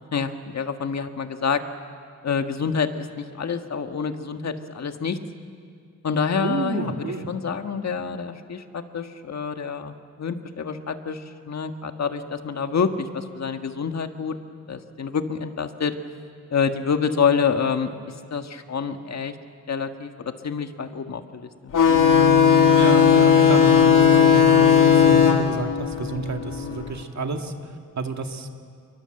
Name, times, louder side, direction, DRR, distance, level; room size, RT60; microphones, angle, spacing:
voice 1, 0.0-1.6 2.2-5.2 6.0-14.3 14.7-15.9 16.5-17.9 18.3-19.3 19.7-21.7, left 6 dB, 60° left, 7 dB, 1.6 m, -27 dB
voice 2, 6.4-7.3 22.7-27.5 28.0-28.5, right 4 dB, 60° right, 4 dB, 2.2 m, -30 dB
sound 1, 21.7-26.9, left 7 dB, 90° left, 2.3 m, -16 dB
29.0 x 23.0 x 7.8 m, 2.2 s
wide cardioid pair, 110°, 31 cm